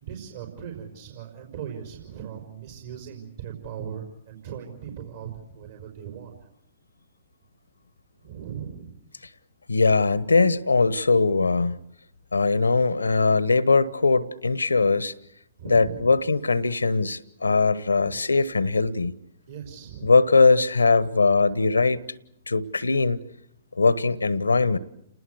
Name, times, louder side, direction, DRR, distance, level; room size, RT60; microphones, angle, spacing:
voice 1, 0.0-6.3 8.2-8.9 15.6-16.2 18.0-18.2 19.5-20.1, right 8 dB, 60° right, 5.3 m, -38 dB
voice 2, 9.7-11.8 12.3-15.1 15.6-19.1 20.0-22.0 22.5-23.2 23.8-24.8, left 4 dB, 85° left, 1.1 m, -21 dB
29.5 x 20.0 x 8.1 m
figure-of-eight pair, 120°, 0 cm